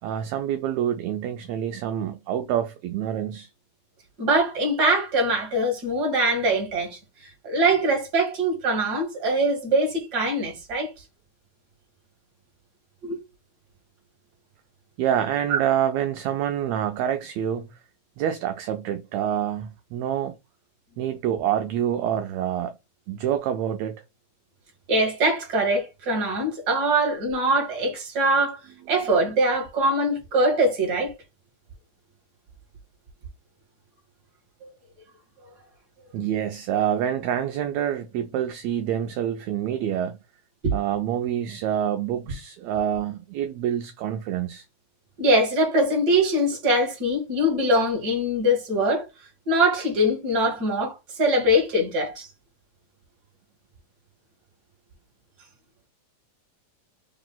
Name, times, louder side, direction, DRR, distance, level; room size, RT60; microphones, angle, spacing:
voice 1, 0.0-3.5 15.0-17.7 18.2-20.4 21.0-22.7 23.1-24.0 36.1-40.2 40.7-44.6, right 10 dB, 80° right, 1.6 m, -27 dB
voice 2, 4.2-7.0 7.4-10.9 13.0-13.2 15.5-15.6 24.9-28.6 28.9-31.1 34.6-34.7 40.6-40.7 45.2-49.1 49.5-52.3, right 1 dB, 40° right, 1.9 m, -22 dB
4.6 x 2.9 x 3.8 m
omnidirectional pair, 3.5 m